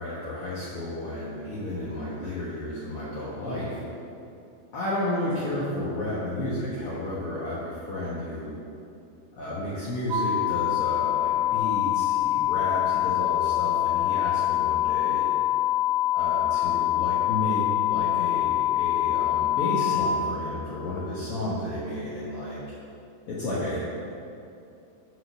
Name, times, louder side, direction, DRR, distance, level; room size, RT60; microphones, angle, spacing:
voice 1, 0.0-3.8 4.7-8.6 9.3-15.3 16.1-22.6 23.3-23.8, left 1 dB, 75° left, -7 dB, 1.2 m, -32 dB
sound 1, 10.1-20.1, left 13 dB, 80° right, 1.4 m, -25 dB
7.7 x 6.2 x 5.6 m, 2.7 s
omnidirectional pair, 4.2 m